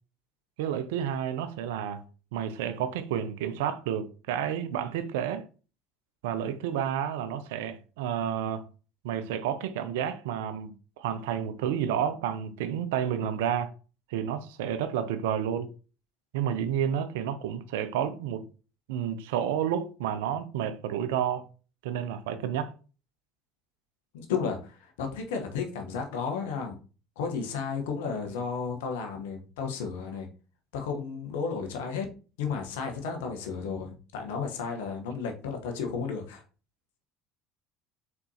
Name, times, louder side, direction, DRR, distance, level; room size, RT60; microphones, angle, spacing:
voice 1, 0.6-2.0 2.3-5.5 6.2-8.6 9.0-13.7 14.1-15.7 16.3-18.4 18.9-21.5 21.8-22.7, right 9 dB, 75° right, 0.5 m, -30 dB
voice 2, 24.1-26.8 27.2-30.3 30.7-32.1 32.4-36.4, left 5 dB, 75° left, 1.0 m, -33 dB
4.2 x 4.1 x 2.8 m
hypercardioid pair, 70°, 0 cm